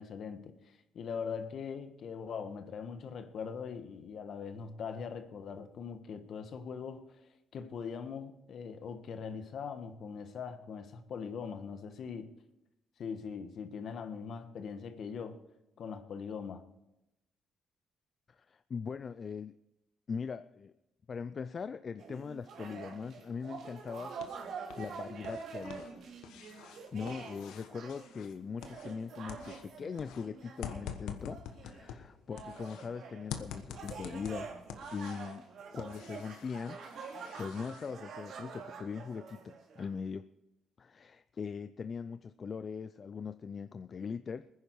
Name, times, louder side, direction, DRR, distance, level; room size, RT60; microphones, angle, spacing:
voice 1, 0.0-12.3 13.0-15.4 15.8-16.6, left 6 dB, 65° left, 1.4 m, -41 dB
voice 2, 18.3-19.6 20.1-20.7 21.1-25.9 26.9-34.5 34.9-35.5 35.7-40.3 40.8-44.5, left 6 dB, 45° left, 0.4 m, -41 dB
sound 1, 22.0-32.0 32.3-39.9, right 5 dB, 70° right, 3.0 m, -46 dB
sound 2, 23.8-24.9 25.2-29.0 29.3-32.9 33.3-35.4 35.8-37.9, left 8 dB, 90° left, 1.3 m, -47 dB
21.0 x 10.0 x 4.7 m
cardioid pair, 90°, 0 cm